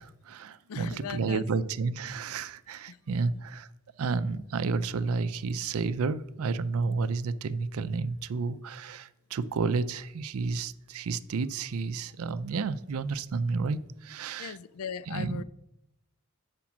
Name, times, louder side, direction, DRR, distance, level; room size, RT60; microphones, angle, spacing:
voice 1, 0.0-3.7 4.0-14.6 15.1-15.4, right 4 dB, 70° right, 0.4 m, -31 dB
voice 2, 0.7-1.5 2.9-3.2 14.4-15.4, left 7 dB, 75° left, 0.4 m, -39 dB
7.2 x 5.2 x 5.9 m
head